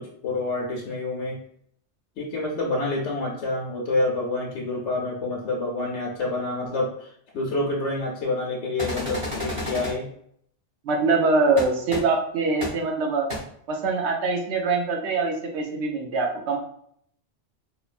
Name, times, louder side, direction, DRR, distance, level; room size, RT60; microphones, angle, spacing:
voice 1, 0.0-1.4 2.2-10.1, left 2 dB, 80° left, -3 dB, 0.9 m, -28 dB
sound 1, 8.8-9.9 11.6-11.7 11.9-12.0 12.6-12.7 13.3-13.4, left 1 dB, 30° right, 0.8 m, -30 dB
voice 2, 10.8-13.3 13.7-16.6, right 3 dB, 70° right, 1 dB, 0.9 m, -23 dB
2.9 x 2.1 x 2.4 m, 0.67 s
omnidirectional pair, 1.2 m